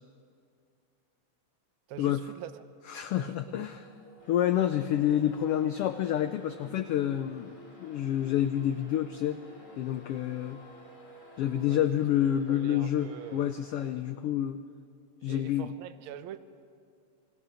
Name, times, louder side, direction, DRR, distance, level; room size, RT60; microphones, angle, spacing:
voice 1, 1.9-2.6 3.2-3.7 11.7-11.9 12.5-13.5 15.2-16.4, right 11 dB, 75° right, 10 dB, 1.2 m, -44 dB
sound 1, 2.8-11.6, left 2 dB, 15° right, 7.1 m, -54 dB
voice 2, 2.9-3.8 4.3-9.4 9.8-10.6 11.4-14.6 15.2-15.7, left 11 dB, 85° left, 10 dB, 1.3 m, -28 dB
sound 2, 4.2-13.9, left 1 dB, 55° left, 5.7 m, -58 dB
28.0 x 19.5 x 6.3 m, 2.3 s
omnidirectional pair, 3.4 m